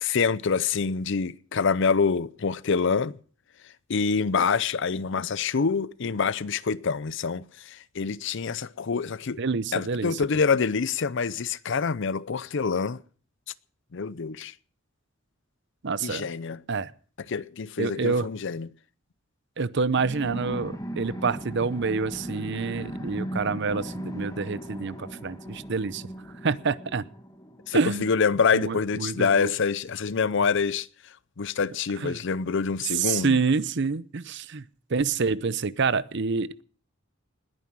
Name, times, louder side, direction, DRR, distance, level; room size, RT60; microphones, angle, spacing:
voice 1, 0.0-3.2 3.9-9.4 9.7-13.0 13.9-14.5 16.0-16.6 17.3-18.7 27.7-30.9 31.4-33.4, left 5 dB, 65° left, 0.6 m, -26 dB
voice 2, 9.4-10.2 15.8-16.3 16.7-16.9 17.8-18.3 19.6-26.0 26.4-27.0 27.7-28.1 28.5-29.5 32.0-32.2 32.9-34.6 34.9-36.6, right 4 dB, 60° right, 0.7 m, -27 dB
sound 1, 20.0-28.1, equal, 15° left, 1.7 m, -38 dB
20.0 x 9.4 x 6.2 m
head